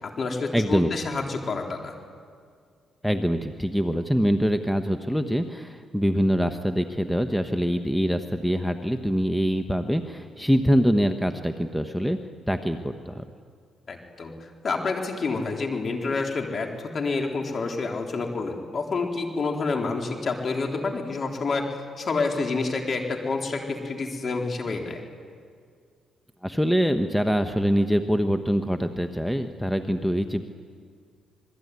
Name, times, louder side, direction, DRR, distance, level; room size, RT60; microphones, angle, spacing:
voice 1, 0.0-2.0 13.9-21.7 22.0-25.0, left 3 dB, 45° left, 2 dB, 3.8 m, -28 dB
voice 2, 0.5-0.9 3.0-12.2 12.5-13.2 26.4-30.4, equal, ahead, 7 dB, 1.1 m, -24 dB
27.0 x 20.5 x 9.6 m, 2.1 s
cardioid pair, 90°, 0 cm